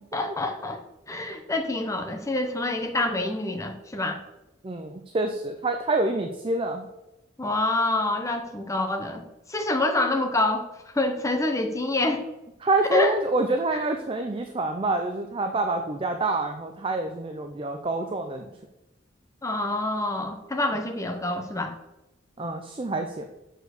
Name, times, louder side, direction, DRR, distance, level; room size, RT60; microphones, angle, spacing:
voice 1, 0.1-0.8 1.1-4.2 7.4-12.3 12.9-13.2 13.7-13.8 19.4-21.7, left 2 dB, 15° left, 5 dB, 0.9 m, -27 dB
voice 2, 4.6-6.9 12.6-18.5 22.4-23.3, right 2 dB, 30° right, 5 dB, 0.5 m, -27 dB
6.9 x 4.5 x 6.6 m, 0.93 s
head